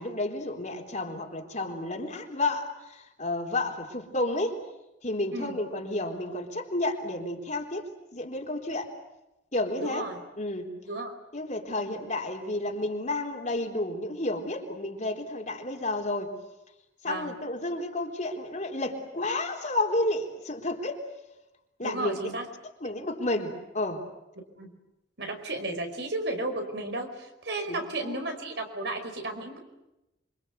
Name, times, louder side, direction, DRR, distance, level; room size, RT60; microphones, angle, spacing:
voice 1, 0.0-4.6 5.0-8.9 9.5-10.0 10.4-10.7 11.3-16.3 17.0-21.0 21.8-22.4 22.8-24.0 27.7-28.2, left 2 dB, 40° left, 2 dB, 3.7 m, -31 dB
voice 2, 9.8-10.2 10.8-11.1 17.0-17.4 21.8-22.5 24.6-24.7 25.2-29.6, right 2 dB, 65° right, 5 dB, 5.1 m, -33 dB
28.0 x 25.0 x 8.2 m, 0.93 s
head